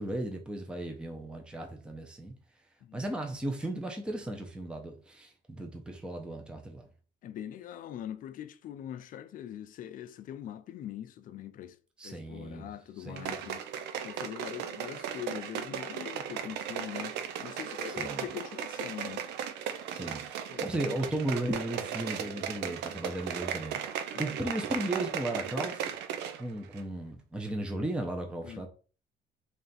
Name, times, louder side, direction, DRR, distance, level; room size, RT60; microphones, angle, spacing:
voice 1, 0.0-2.3 2.9-6.9 12.0-13.4 17.9-18.2 19.9-25.9 26.4-28.7, right 1 dB, 5° right, 0.6 m, -36 dB
voice 2, 7.2-11.8 12.0-13.6 14.0-19.2 20.5-21.0 24.1-24.3 28.4-28.7, left 11 dB, 55° left, 0.4 m, -42 dB
sound 1, 13.1-26.4 26.7-26.8, right 8 dB, 85° right, 0.5 m, -36 dB
3.3 x 2.4 x 4.0 m
cardioid pair, 110°, 17 cm